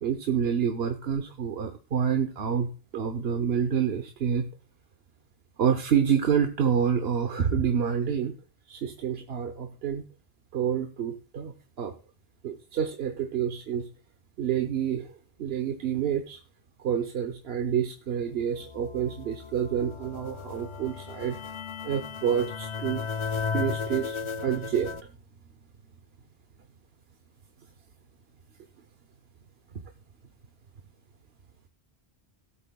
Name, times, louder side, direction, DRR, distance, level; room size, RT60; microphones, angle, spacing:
voice 1, 0.0-4.5 5.6-8.3 8.7-10.0 10.5-11.9 12.4-13.9 14.4-15.1 15.4-16.4 16.8-21.4 21.8-23.0 23.5-25.1, right 8 dB, 70° right, 6 dB, 1.1 m, -28 dB
sound 1, 18.5-25.0, left 5 dB, 45° left, 0.4 m, -35 dB
18.0 x 8.2 x 2.3 m, 0.35 s
omnidirectional pair, 1.1 m